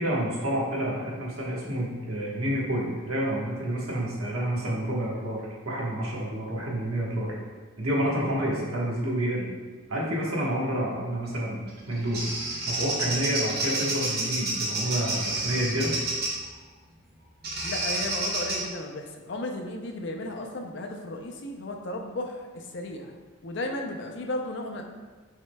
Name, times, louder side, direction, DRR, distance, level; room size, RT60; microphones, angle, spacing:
voice 1, 0.0-7.3 7.8-9.5 9.9-12.3 12.6-15.9, right 1 dB, 90° right, -4 dB, 1.2 m, -29 dB
Bird vocalization bird call bird song, 11.7-16.4 17.4-18.6, right 2 dB, 50° right, 1.0 m, -29 dB
voice 2, 17.6-23.1 23.4-24.8, left 1 dB, 55° left, 2 dB, 0.5 m, -34 dB
6.1 x 3.7 x 2.2 m, 1.4 s
head